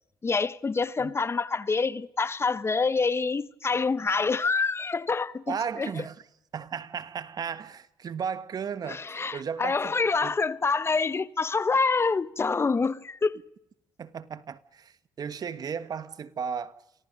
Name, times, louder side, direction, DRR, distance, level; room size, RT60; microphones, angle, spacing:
voice 1, 0.2-5.9 8.8-13.4, left 4 dB, 30° left, 1.0 m, -26 dB
voice 2, 5.5-6.2 6.5-9.0 9.3-10.0 10.2-10.3 14.0-16.7, right 7 dB, 50° right, 1.5 m, -35 dB
29.5 x 24.0 x 5.4 m
supercardioid pair, 70°, 8 cm